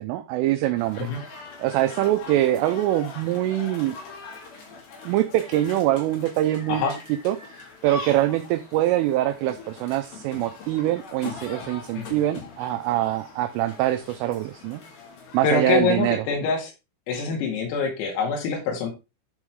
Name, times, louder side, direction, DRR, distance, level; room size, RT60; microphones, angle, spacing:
voice 1, 0.0-4.0 5.1-6.8 7.2-14.8 15.3-16.2, right 14 dB, 80° right, 7 dB, 3.1 m, -24 dB
sound 1, 0.8-15.4, left 4 dB, 60° left, 4.8 m, -42 dB
voice 2, 15.4-16.7 17.1-18.9, left 4 dB, 90° left, 0 dB, 4.9 m, -25 dB
12.5 x 4.8 x 3.6 m, 0.26 s
omnidirectional pair, 5.9 m